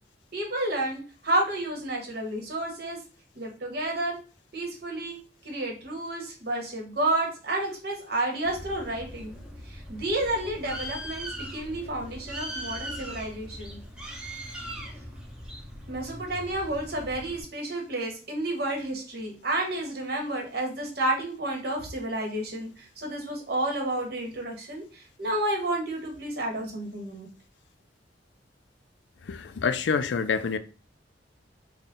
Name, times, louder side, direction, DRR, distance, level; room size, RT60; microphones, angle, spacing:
voice 1, 0.3-3.0 3.3-4.2 4.5-5.2 5.4-9.4 9.6-13.8 15.9-27.3, right 1 dB, 60° right, 1.3 m, -30 dB
Bird, 8.4-17.4, equal, 5° right, 0.6 m, -40 dB
voice 2, 29.2-30.6, left 5 dB, 80° left, 0.4 m, -27 dB
4.0 x 2.2 x 3.7 m
head